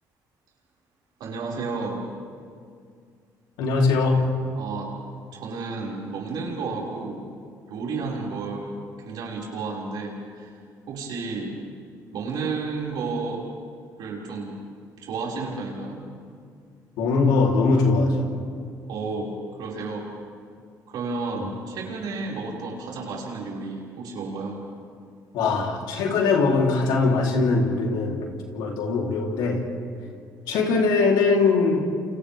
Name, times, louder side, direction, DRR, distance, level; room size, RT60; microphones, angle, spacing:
voice 1, 1.2-2.0 4.6-4.9 5.3-7.3 7.7-8.8 9.0-10.5 10.9-11.5 12.1-13.4 14.0-14.6 15.0-16.1 18.9-19.3 19.6-20.1 20.9-24.6, right 4 dB, 75° right, -4 dB, 5.8 m, -32 dB
voice 2, 3.6-4.3 17.0-18.3 21.4-21.5 25.3-28.3 28.5-29.7 30.5-31.8, left 4 dB, 85° left, -1 dB, 3.7 m, -21 dB
29.0 x 28.5 x 3.6 m, 2.2 s
supercardioid pair, 80°, 7 cm